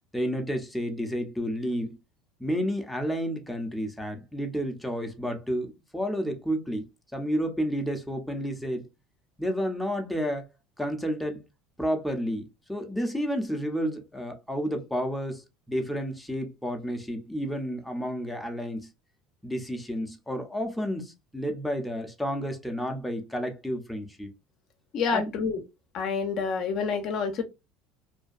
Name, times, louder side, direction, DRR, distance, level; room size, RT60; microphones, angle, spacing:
voice 1, 0.1-2.0 2.4-6.8 7.1-8.9 9.4-10.5 10.8-11.4 11.8-18.9 19.4-24.3 25.1-25.3, equal, ahead, 0.6 m, -31 dB
voice 2, 24.9-25.6 25.9-27.5, left 5 dB, 50° left, 0.5 m, -28 dB
2.6 x 2.2 x 2.3 m
supercardioid pair, 120°, 0 cm